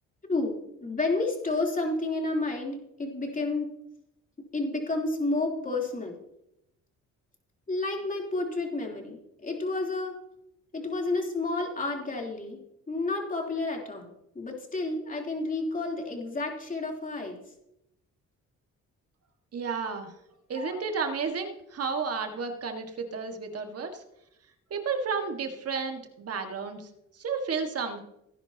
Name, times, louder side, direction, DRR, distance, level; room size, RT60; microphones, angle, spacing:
voice 1, 0.3-3.7 4.5-6.2 7.7-10.2 10.7-14.1 14.4-17.4 20.5-20.7, left 2 dB, 25° left, 0 dB, 3.5 m, -30 dB
voice 2, 19.5-20.1 20.5-24.0 24.7-26.9 27.1-28.0, right 5 dB, 55° right, 5 dB, 1.8 m, -32 dB
18.0 x 10.5 x 2.9 m, 0.82 s
cardioid pair, 90°, 30 cm